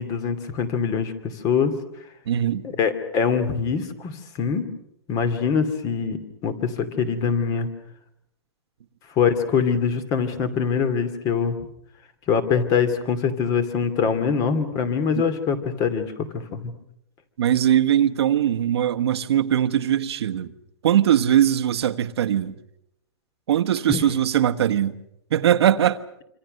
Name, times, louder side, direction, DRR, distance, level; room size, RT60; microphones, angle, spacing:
voice 1, 0.0-1.7 2.8-4.7 5.1-7.7 9.2-11.6 12.3-16.7 23.9-24.0, left 6 dB, 25° left, 2.6 m, -23 dB
voice 2, 2.3-2.7 15.1-15.2 17.4-20.5 20.8-22.5 23.5-24.9 25.3-26.0, right 10 dB, 70° right, 1.4 m, -20 dB
26.5 x 26.0 x 6.6 m
hypercardioid pair, 160°, 14 cm